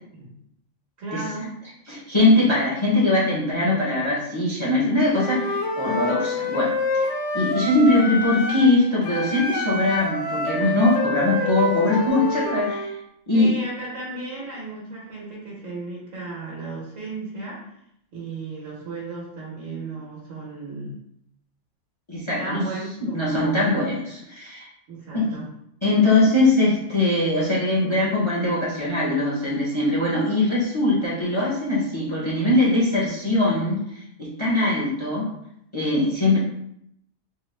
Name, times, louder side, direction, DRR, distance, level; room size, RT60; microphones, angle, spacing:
voice 1, 1.0-1.5 13.3-17.6 18.1-20.9 22.4-23.7 24.9-25.4, right 3 dB, 70° right, -5 dB, 1.2 m, -34 dB
voice 2, 1.9-6.7 7.3-13.0 13.3-13.5 22.1-22.6 23.1-24.7 25.1-25.4 25.8-33.8 34.2-35.3 35.7-36.4, left 2 dB, 35° left, -6 dB, 0.5 m, -21 dB
Wind instrument woodwind instrument, 5.1-8.8 9.0-12.9, left 2 dB, 70° left, 0.9 m, -27 dB
3.8 x 2.0 x 3.1 m, 0.74 s
omnidirectional pair, 1.3 m